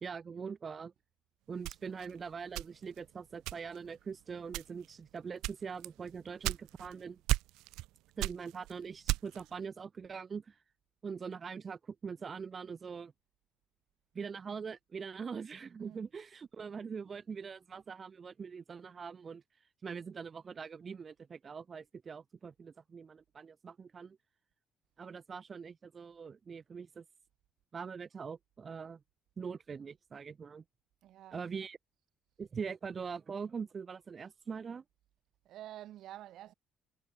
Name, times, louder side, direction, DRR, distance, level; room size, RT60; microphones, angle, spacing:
voice 1, 0.0-0.9 1.5-7.2 8.2-10.6 11.0-13.1 14.1-19.4 19.8-24.2 25.0-27.0 27.7-29.0 29.4-30.6 31.3-31.8 32.4-34.8, right 6 dB, 35° right, 2.0 m, -43 dB
sound 1, 1.6-3.0 3.5-3.9 4.5-4.9 5.4-6.9 7.3-7.9 8.2-9.5, right 19 dB, 85° right, 1.3 m, -35 dB
voice 2, 31.0-31.4 35.4-36.5, right 13 dB, 70° right, 3.2 m, -49 dB
cardioid pair, 105°, 0 cm